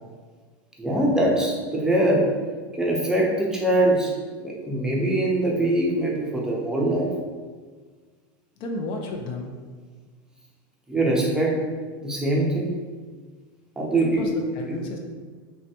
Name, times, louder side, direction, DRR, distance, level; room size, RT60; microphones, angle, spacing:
voice 1, 0.8-2.3 2.8-4.1 4.4-7.1 10.9-11.6 12.0-12.7 13.8-14.3 14.7-14.8, right 1 dB, 5° right, -3 dB, 0.6 m, -23 dB
voice 2, 8.6-9.6 13.9-15.0, left 2 dB, 50° left, 2 dB, 0.4 m, -32 dB
3.3 x 2.1 x 2.8 m, 1.5 s
hypercardioid pair, 110°, 12 cm